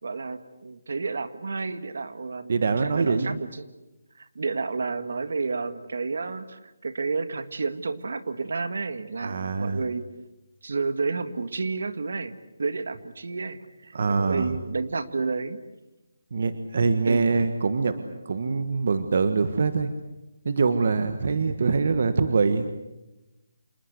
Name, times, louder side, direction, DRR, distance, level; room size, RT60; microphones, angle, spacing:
voice 1, 0.0-3.7 4.1-10.1 10.6-12.3 12.6-15.6 17.1-17.5 21.2-21.4, right 4 dB, 60° right, 11 dB, 1.8 m, -31 dB
voice 2, 2.5-3.4 9.2-9.8 13.9-14.5 16.3-19.9 20.4-22.7, right 4 dB, 40° right, 9 dB, 1.4 m, -24 dB
27.5 x 20.5 x 8.2 m, 1.0 s
hypercardioid pair, 175°, 0 cm